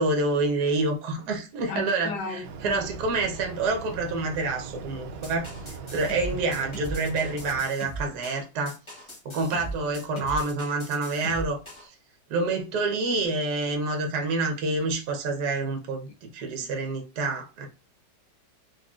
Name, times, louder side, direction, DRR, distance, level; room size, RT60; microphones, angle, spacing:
voice 1, 0.0-5.5 5.9-8.8 9.2-11.9 12.3-17.7, right 3 dB, 65° right, 1.3 m, -27 dB
voice 2, 1.7-2.4, left 4 dB, 75° left, 1.4 m, -33 dB
sound 1, 2.4-7.6, right 4 dB, 85° right, 1.3 m, -40 dB
sound 2, 5.2-11.9, right 2 dB, 20° left, 1.1 m, -38 dB
3.9 x 3.4 x 2.4 m
omnidirectional pair, 1.9 m